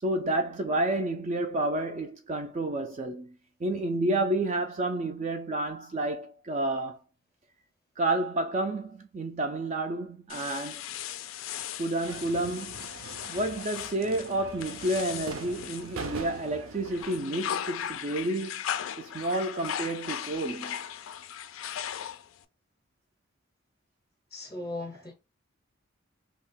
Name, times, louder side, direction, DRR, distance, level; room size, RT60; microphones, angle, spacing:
voice 1, 0.0-7.0 8.0-10.8 11.8-12.8 13.3-18.6 19.0-20.8, right 1 dB, 35° right, 0.3 m, -30 dB
sound 1, 10.3-16.5 16.9-22.4, left 10 dB, 70° left, 0.3 m, -38 dB
sound 2, 12.0-17.2, right 3 dB, 75° right, 0.6 m, -43 dB
voice 2, 24.3-25.1, left 2 dB, 15° left, 0.5 m, -38 dB
2.7 x 2.3 x 3.5 m
head